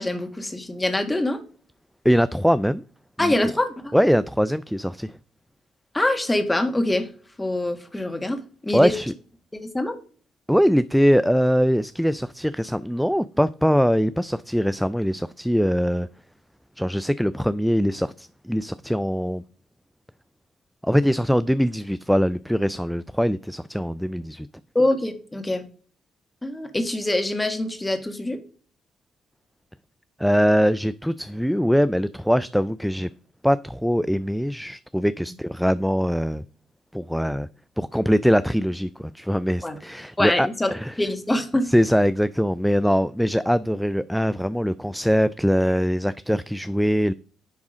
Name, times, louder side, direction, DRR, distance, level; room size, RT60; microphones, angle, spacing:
voice 1, 0.0-1.4 3.2-4.0 5.9-7.1 7.4-8.9 9.5-9.9 24.8-25.6 26.4-28.4 39.6-39.8 40.2-40.7 41.0-41.7, left 1 dB, 15° left, 1.9 m, -24 dB
voice 2, 2.0-2.8 3.2-3.5 3.9-5.2 8.7-9.1 10.5-16.1 16.8-19.4 20.8-24.5 30.2-33.1 33.4-36.4 36.9-37.5 37.8-41.0 41.6-47.1, equal, ahead, 0.4 m, -22 dB
10.5 x 3.6 x 5.0 m
supercardioid pair, 55°, 0 cm